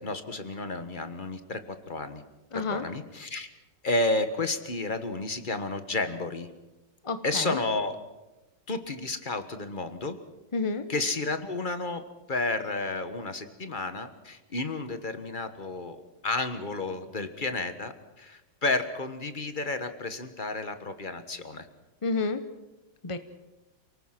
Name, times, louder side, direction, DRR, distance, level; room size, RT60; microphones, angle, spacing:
voice 1, 0.0-2.2 2.5-3.5 3.8-6.5 7.2-8.0 8.7-10.2 10.9-12.0 12.3-21.7, left 2 dB, 30° left, 9 dB, 1.3 m, -31 dB
voice 2, 2.5-2.8 7.0-7.6 10.5-10.9 22.0-22.4 23.0-23.2, left 3 dB, 45° left, 10 dB, 0.4 m, -29 dB
28.5 x 19.0 x 5.9 m, 1.1 s
omnidirectional pair, 2.1 m